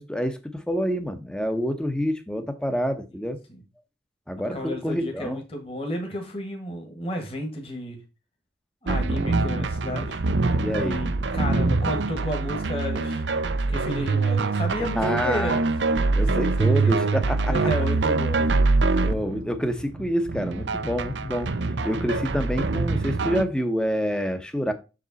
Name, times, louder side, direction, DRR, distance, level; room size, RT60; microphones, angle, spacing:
voice 1, 0.0-3.4 4.3-5.4 10.6-11.0 15.0-15.6 16.1-17.6 19.0-21.5 21.8-24.7, equal, 5° left, 0.8 m, -27 dB
voice 2, 3.2-3.6 4.5-8.0 8.8-10.2 10.8-13.2 13.5-15.6 16.1-17.1 17.5-18.5 18.8-19.1, equal, 30° left, 1.5 m, -32 dB
sound 1, 8.9-23.4, right 3 dB, 80° right, 0.7 m, -24 dB
6.6 x 5.1 x 4.0 m
head